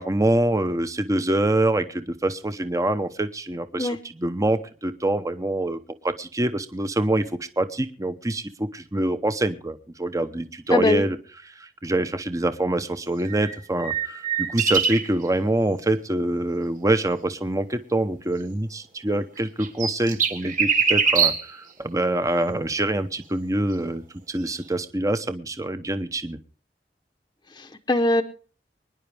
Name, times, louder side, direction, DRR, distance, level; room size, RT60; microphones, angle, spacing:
voice 1, 0.0-11.2 11.5-26.4, right 1 dB, 20° right, 10 dB, 0.8 m, -25 dB
voice 2, 10.7-11.0 27.5-28.2, left 2 dB, 25° left, 5 dB, 0.8 m, -22 dB
sound 1, 13.2-15.1 19.4-21.5 24.5-24.6, right 6 dB, 50° right, 3.0 m, -23 dB
24.5 x 10.5 x 3.4 m, 0.40 s
head